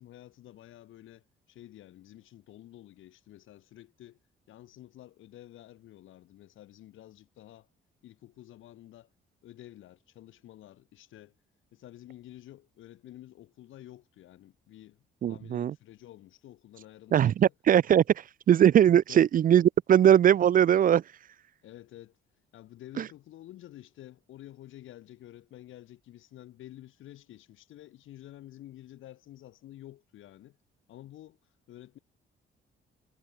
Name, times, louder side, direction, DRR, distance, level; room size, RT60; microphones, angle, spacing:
voice 1, 0.0-4.2 4.5-7.7 8.0-9.1 9.4-11.3 11.7-17.5 19.1-19.3 21.6-22.2 22.5-30.6 30.9-31.4 31.7-32.0, left 13 dB, 80° left, 5.7 m, -50 dB
voice 2, 15.2-15.7 17.1-18.0 18.5-21.0 23.0-23.1, right 10 dB, 45° right, 0.4 m, -20 dB
cardioid pair, 90°, 20 cm